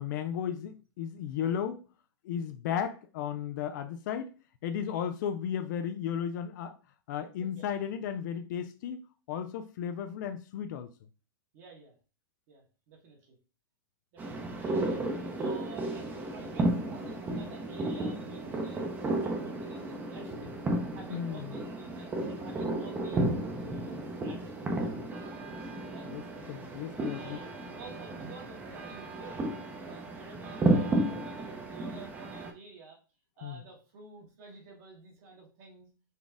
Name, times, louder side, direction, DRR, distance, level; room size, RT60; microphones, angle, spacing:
voice 1, 0.0-1.9 2.2-4.3 4.6-6.8 7.1-9.0 9.3-10.9 21.1-21.6 26.1-27.4 33.4-33.6, left 8 dB, 55° left, 0.4 m, -34 dB
voice 2, 11.5-11.9 12.5-13.4 14.1-20.6 20.9-23.3 23.6-24.9 25.9-26.1 27.1-29.5 29.9-33.0 33.4-35.9, right 4 dB, 45° right, 1.2 m, -51 dB
sound 1, 14.2-32.5, right 2 dB, 15° right, 0.7 m, -33 dB
4.1 x 2.4 x 3.5 m
hypercardioid pair, 135°, 12 cm